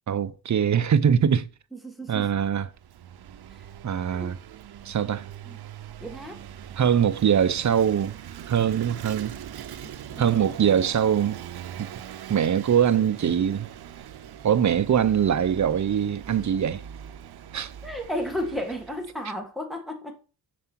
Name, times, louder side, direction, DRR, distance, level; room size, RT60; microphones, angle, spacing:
voice 1, 0.1-1.4 2.1-2.7 3.8-4.4 4.9-5.3 6.8-8.2 8.5-9.4 10.2-11.4 11.8-11.9 12.3-13.7 14.4-16.8 17.5-17.7, right 8 dB, 50° right, 0.6 m, -22 dB
voice 2, 1.7-2.3 4.1-4.3 5.4-5.6 6.0-6.4 10.1-10.5 17.8-20.2, equal, ahead, 1.6 m, -33 dB
Vehicle / Engine, 2.5-19.1, right 9 dB, 90° right, 0.6 m, -42 dB
7.4 x 6.8 x 4.4 m
wide cardioid pair, 155°, 37 cm